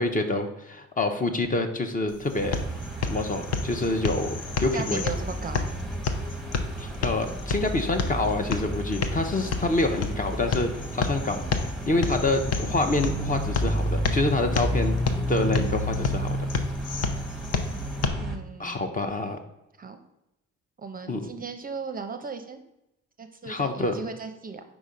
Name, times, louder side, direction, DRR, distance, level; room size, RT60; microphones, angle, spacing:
voice 1, 0.0-2.6 3.0-5.0 6.8-11.4 11.9-14.9 15.3-16.4 18.6-19.4 21.1-21.2 23.5-24.0, left 2 dB, 25° left, 6 dB, 0.7 m, -27 dB
sound 1, 2.1-18.1, left 5 dB, 55° left, 0.7 m, -31 dB
sound 2, 2.4-18.4, right 1 dB, ahead, 1.0 m, -32 dB
voice 2, 4.7-5.7 18.2-18.8 19.8-20.0 20.8-22.6 23.2-24.6, right 5 dB, 30° right, 7 dB, 0.6 m, -37 dB
4.8 x 4.0 x 5.0 m, 0.89 s
cardioid pair, 90°, 30 cm